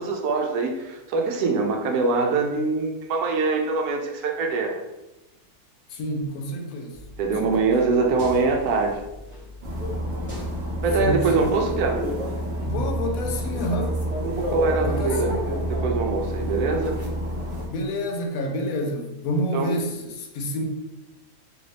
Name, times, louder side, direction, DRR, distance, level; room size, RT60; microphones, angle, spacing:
voice 1, 0.0-4.8 7.2-9.0 10.8-12.0 14.2-15.3 15.7-17.0 19.5-19.8, right 4 dB, 80° right, 2 dB, 1.1 m, -23 dB
voice 2, 5.9-7.0 7.3-7.7 11.0-11.5 12.6-14.0 14.8-15.4 17.7-20.6, left 1 dB, 75° left, 3 dB, 1.0 m, -29 dB
sound 1, 6.9-12.0, left 2 dB, 10° left, 0.7 m, -41 dB
sound 2, 9.6-17.7, equal, 60° right, 1.0 m, -28 dB
3.4 x 2.5 x 3.2 m, 0.98 s
omnidirectional pair, 1.6 m